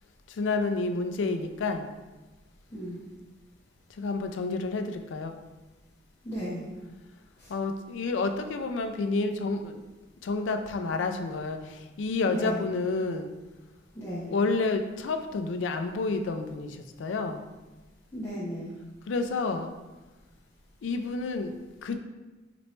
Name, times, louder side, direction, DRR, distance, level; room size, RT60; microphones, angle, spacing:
voice 1, 0.3-1.9 3.9-5.3 7.5-9.8 10.2-13.3 14.3-17.4 19.1-19.7 20.8-22.0, left 3 dB, 70° left, 7 dB, 0.4 m, -30 dB
voice 2, 6.2-6.6 7.4-7.5 12.2-12.6 13.9-14.3 18.1-18.7, equal, 15° left, -10 dB, 0.7 m, -35 dB
4.2 x 3.0 x 3.1 m, 1.2 s
head